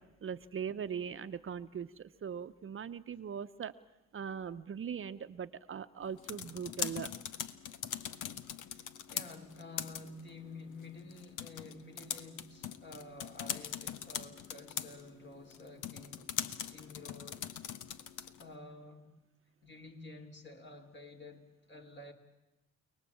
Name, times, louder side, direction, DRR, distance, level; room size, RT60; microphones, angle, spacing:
voice 1, 0.2-3.7 4.1-7.1, right 7 dB, 45° right, 0.9 m, -40 dB
sound 1, 6.0-18.5, left 9 dB, 85° left, 1.3 m, -42 dB
voice 2, 8.7-16.3 16.7-17.5 18.2-19.1 19.6-22.1, left 2 dB, 40° left, 4.1 m, -50 dB
29.5 x 19.5 x 8.6 m
cardioid pair, 90°, 30 cm